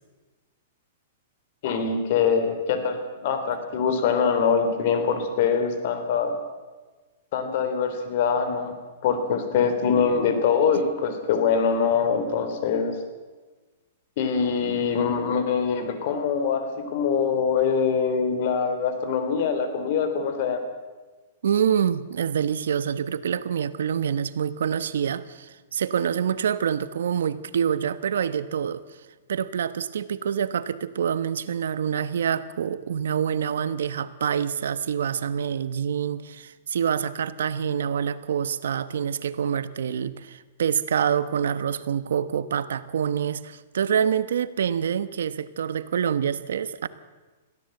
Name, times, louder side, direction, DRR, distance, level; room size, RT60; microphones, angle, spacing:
voice 1, 1.6-3.0 3.2-6.3 7.3-8.7 9.0-13.0 14.2-20.6, left 6 dB, 50° left, 8 dB, 3.6 m, -23 dB
voice 2, 21.4-28.8 29.3-46.9, right 8 dB, 85° right, 15 dB, 1.1 m, -26 dB
22.0 x 15.5 x 7.9 m, 1.3 s
hypercardioid pair, 155°, 0 cm